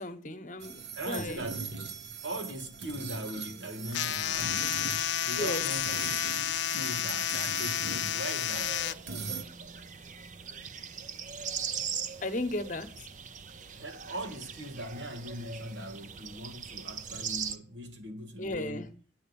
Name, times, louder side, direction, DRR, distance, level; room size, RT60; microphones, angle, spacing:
voice 1, 0.0-1.4 5.4-5.6 12.2-12.9 18.4-18.9, left 1 dB, 45° left, 1.1 m, -35 dB
sound 1, 0.6-9.4, right 5 dB, 70° right, 1.2 m, -40 dB
voice 2, 1.0-1.8 2.2-8.8 13.7-18.9, right 1 dB, 90° right, 2.0 m, -40 dB
sound 2, 3.9-8.9, left 11 dB, 75° left, 0.5 m, -31 dB
sound 3, 8.5-17.6, right 7 dB, 40° right, 0.7 m, -40 dB
9.6 x 8.5 x 7.0 m
head